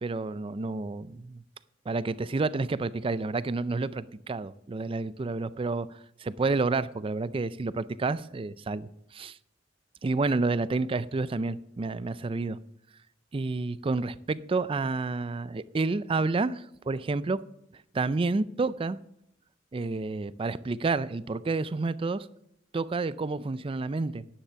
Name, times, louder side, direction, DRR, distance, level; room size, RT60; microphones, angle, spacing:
voice 1, 0.0-1.4 1.9-9.4 10.0-12.6 13.3-17.4 17.9-19.0 19.7-22.3 22.7-24.3, right 3 dB, 30° right, 0.4 m, -30 dB
10.0 x 10.0 x 5.8 m
head